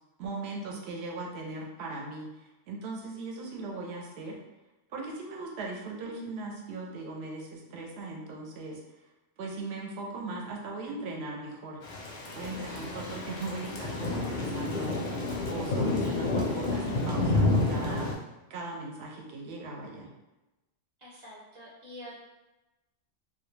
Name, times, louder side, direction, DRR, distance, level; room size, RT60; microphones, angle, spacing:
voice 1, 0.2-2.3 2.7-4.4 4.9-8.8 9.4-11.8 12.3-15.0 15.5-18.1 18.5-20.1, right 3 dB, 65° right, -1 dB, 0.8 m, -38 dB
Thunder / Rain, 11.8-18.1, left 2 dB, 60° left, 0.5 m, -29 dB
voice 2, 21.0-22.2, equal, 25° right, -8 dB, 0.8 m, -47 dB
2.1 x 2.1 x 3.1 m, 1.0 s
omnidirectional pair, 1.3 m